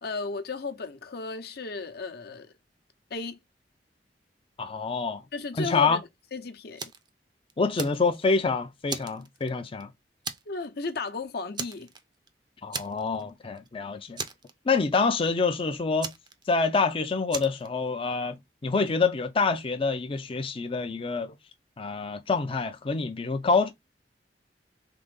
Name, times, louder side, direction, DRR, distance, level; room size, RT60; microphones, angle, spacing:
voice 1, 0.0-2.5 3.1-3.4 5.3-6.0 6.3-6.8 10.5-11.9, left 3 dB, 65° left, 0.8 m, -34 dB
voice 2, 4.6-5.2 5.6-6.0 7.6-9.9 12.6-14.2 14.7-16.1 16.5-18.4 18.6-21.3 21.8-23.7, left 4 dB, 30° left, 0.5 m, -26 dB
Fire, 6.8-7.1 7.5-8.4 8.9-9.8 10.2-10.7 10.9-11.1 11.5-12.3 12.7-13.3 13.6-13.7 14.2-15.0 16.0-16.8 17.3-17.7, right 5 dB, 25° right, 0.5 m, -37 dB
3.8 x 3.5 x 3.7 m
head